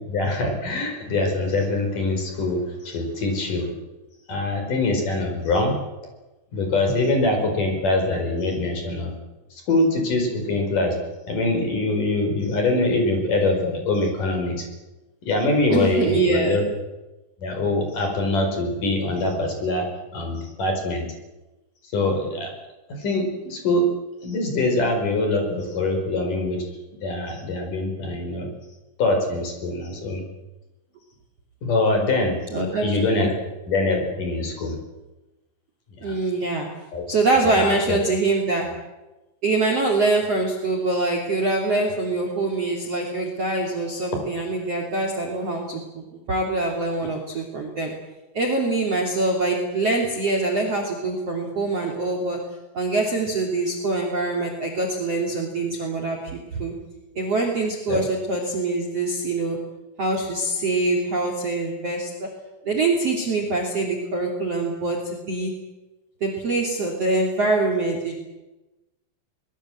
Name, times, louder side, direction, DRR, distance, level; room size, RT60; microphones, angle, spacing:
voice 1, 0.0-3.7 4.3-5.7 6.5-9.1 9.5-11.0 11.3-14.7 15.2-16.7 17.4-19.9 20.1-21.1 21.9-22.5 23.0-23.9 24.2-26.6 27.0-28.5 29.0-30.2 31.6-32.4 32.8-33.3 33.7-34.7 36.0-36.2 36.9-37.1 37.4-38.0 57.9-58.0, left 2 dB, 40° left, 4 dB, 6.0 m, -23 dB
voice 2, 15.7-16.6 32.5-32.9 33.2-33.3 36.0-36.7 37.1-38.6 39.4-47.9 48.3-52.4 52.7-56.7 57.1-59.6 60.0-62.3 62.6-65.5 66.2-68.2, right 2 dB, 35° right, 3 dB, 3.1 m, -24 dB
23.5 x 21.5 x 7.8 m, 1.1 s
omnidirectional pair, 6.0 m